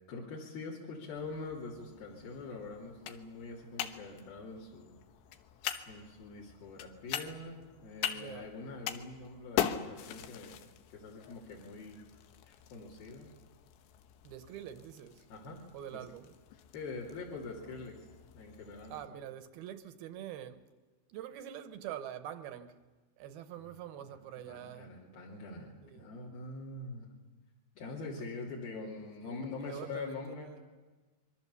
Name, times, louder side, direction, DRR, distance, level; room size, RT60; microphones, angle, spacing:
voice 1, 0.0-5.0 5.9-12.0 12.4-13.3 15.3-15.6 15.9-16.0 16.7-18.1 18.3-19.2 23.6-23.8 24.5-27.1 27.8-30.6, left 3 dB, 60° left, 4.7 m, -44 dB
sound 1, 1.2-19.1, left 10 dB, 85° left, 3.3 m, -43 dB
voice 2, 8.1-8.5 14.2-15.3 15.7-16.3 18.9-20.7 21.1-22.8 23.2-24.9 25.8-26.1 29.2-30.6, right 10 dB, 70° right, 2.6 m, -45 dB
25.5 x 23.0 x 7.0 m
omnidirectional pair, 5.0 m